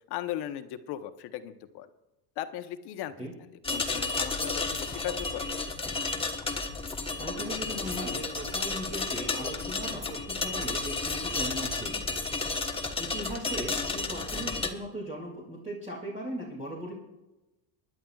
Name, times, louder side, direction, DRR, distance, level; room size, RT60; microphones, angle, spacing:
voice 1, 0.1-1.9 2.4-5.4, left 12 dB, 65° left, 9 dB, 1.1 m, -38 dB
sound 1, 3.6-14.7, left 3 dB, 15° left, 1.2 m, -32 dB
voice 2, 7.2-12.2 13.0-16.9, equal, 15° right, -4 dB, 2.5 m, -38 dB
24.5 x 11.0 x 2.4 m, 1.0 s
cardioid pair, 125°, 42 cm